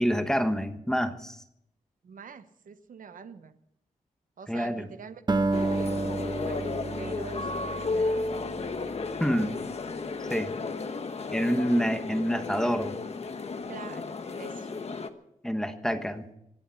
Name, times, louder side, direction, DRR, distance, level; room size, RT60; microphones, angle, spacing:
voice 1, 0.0-1.4 4.5-4.9 9.2-9.6 10.3-10.5 11.3-13.0 15.4-16.2, equal, 5° left, 7 dB, 1.3 m, -27 dB
voice 2, 2.0-3.6 4.4-5.2 5.6-8.7 10.6-10.7 13.7-14.7, right 5 dB, 70° right, 10 dB, 1.0 m, -46 dB
Acoustic guitar, 5.3-9.7, right 3 dB, 30° right, 1.0 m, -31 dB
sound 1, 5.5-15.1, left 3 dB, 50° left, 1.1 m, -33 dB
25.0 x 8.8 x 5.8 m, 0.77 s
wide cardioid pair, 125°, 14 cm